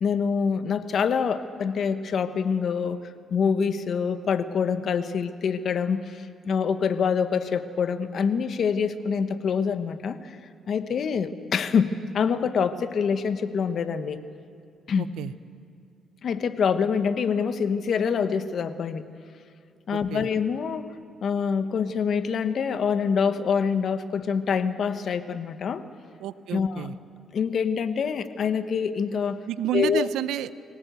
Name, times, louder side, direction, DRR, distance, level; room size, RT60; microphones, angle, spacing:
voice 1, 0.0-10.4 10.7-14.2 14.9-15.1 16.2-19.1 19.9-20.9 21.2-25.8 26.5-26.9 27.3-29.4 29.7-30.1, left 6 dB, 60° left, 11 dB, 1.1 m, -25 dB
voice 2, 15.0-15.3 19.9-20.3 26.2-26.9 29.5-30.6, right 12 dB, 85° right, 15 dB, 0.6 m, -30 dB
25.5 x 18.0 x 8.1 m, 2.4 s
cardioid pair, 90°, 0 cm